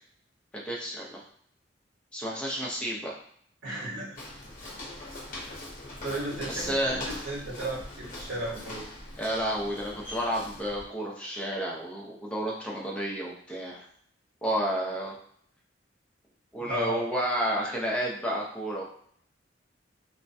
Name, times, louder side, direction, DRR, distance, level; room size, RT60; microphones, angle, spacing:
voice 1, 0.5-1.2 2.1-3.2 6.5-7.0 9.2-13.8 14.4-15.2 16.5-18.8, equal, 5° left, -3 dB, 0.5 m, -31 dB
voice 2, 3.6-4.2 6.0-8.9 16.6-17.0, right 1 dB, 80° right, -5 dB, 1.2 m, -35 dB
Walk footsteps, 4.2-10.9, left 1 dB, 45° left, 0.7 m, -41 dB
3.2 x 2.1 x 2.6 m, 0.63 s
head